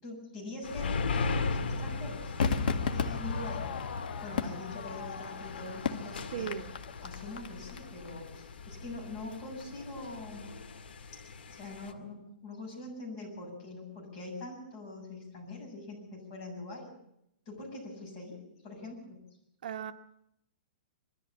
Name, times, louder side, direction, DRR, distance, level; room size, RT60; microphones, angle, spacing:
voice 1, 0.0-2.3 2.9-3.6 4.2-6.6 7.0-10.5 11.5-16.9 17.5-19.2, left 2 dB, 30° left, 7.4 m, -43 dB
sound 1, 0.6-11.9, left 4 dB, 85° left, 2.2 m, -38 dB
Crowd / Fireworks, 2.4-7.8 8.1-8.2, left 5 dB, 60° left, 1.8 m, -34 dB
voice 2, 6.3-6.8 19.6-19.9, right 9 dB, 55° right, 0.9 m, -37 dB
22.0 x 14.0 x 8.5 m
hypercardioid pair, 175°, 5 cm